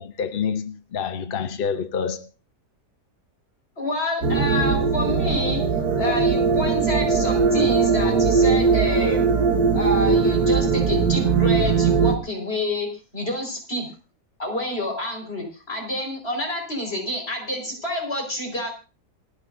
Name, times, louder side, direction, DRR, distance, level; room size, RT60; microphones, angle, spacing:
voice 1, 0.0-2.3, left 6 dB, 50° left, 0.7 m, -27 dB
voice 2, 3.8-9.3 9.7-13.9 14.4-18.7, left 1 dB, 35° left, 5.0 m, -28 dB
sound 1, 4.2-12.2, right 5 dB, 65° right, 1.9 m, -20 dB
27.5 x 10.0 x 2.6 m
omnidirectional pair, 1.8 m